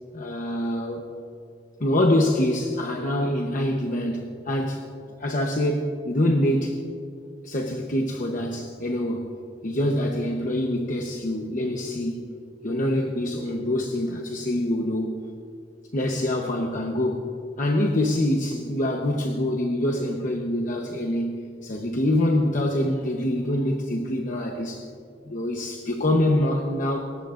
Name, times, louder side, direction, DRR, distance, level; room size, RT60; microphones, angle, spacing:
voice 1, 0.1-1.1 1.8-4.8 5.2-6.8 7.4-9.3 9.6-12.2 12.6-15.2 15.9-17.2 17.6-24.8 25.3-27.2, left 1 dB, 50° left, 1 dB, 1.0 m, -25 dB
26.0 x 14.0 x 2.6 m, 2.5 s
head